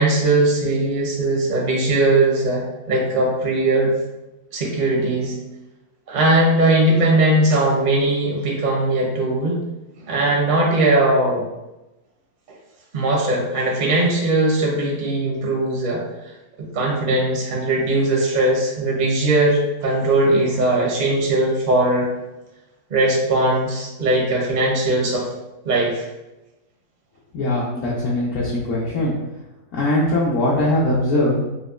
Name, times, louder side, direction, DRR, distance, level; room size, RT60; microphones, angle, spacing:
voice 1, 0.0-3.9 4.5-5.4 6.1-9.6 10.1-11.4 12.9-16.0 16.6-22.1 22.9-25.2 25.6-26.0, right 2 dB, 55° right, -2 dB, 0.5 m, -19 dB
voice 2, 27.3-29.1 29.7-31.4, left 1 dB, 65° left, -6 dB, 0.9 m, -21 dB
5.0 x 2.1 x 2.3 m, 0.98 s
omnidirectional pair, 1.7 m